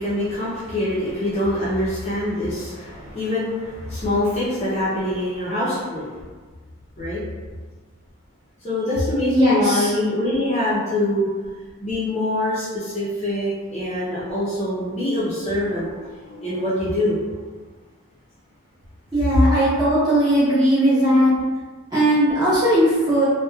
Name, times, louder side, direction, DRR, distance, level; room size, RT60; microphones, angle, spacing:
voice 1, 0.0-6.2 7.0-7.2 8.6-11.3 11.8-17.2, left 1 dB, 30° left, -10 dB, 0.6 m, -24 dB
voice 2, 9.3-9.9 19.1-21.3 21.9-23.2, equal, 20° right, -12 dB, 1.1 m, -18 dB
3.0 x 2.1 x 2.3 m, 1.4 s
head